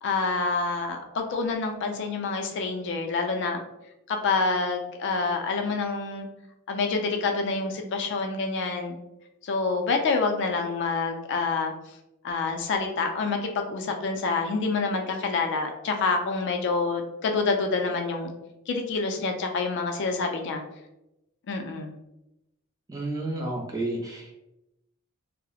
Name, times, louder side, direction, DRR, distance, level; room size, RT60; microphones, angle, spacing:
voice 1, 0.0-3.6 4.1-6.3 6.7-9.0 9.4-11.7 12.2-18.3 18.7-20.6 21.5-21.9, left 4 dB, 55° left, 4 dB, 0.3 m, -27 dB
voice 2, 22.9-24.4, right 2 dB, 15° right, -1 dB, 0.4 m, -31 dB
2.8 x 2.0 x 2.3 m, 0.90 s
head